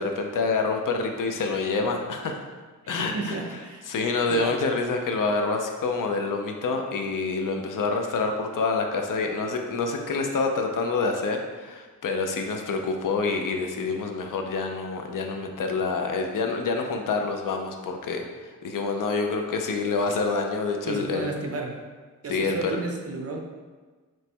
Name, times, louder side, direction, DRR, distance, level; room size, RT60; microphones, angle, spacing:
voice 1, 0.0-2.5 2.9-3.6 3.9-21.3 22.3-22.8, left 4 dB, 65° left, 4 dB, 0.5 m, -27 dB
voice 2, 2.8-3.9 4.3-4.6 20.8-21.8 22.2-23.4, right 3 dB, 45° right, 2 dB, 0.4 m, -32 dB
3.1 x 2.2 x 4.2 m, 1.4 s
wide cardioid pair, 100°, 35 cm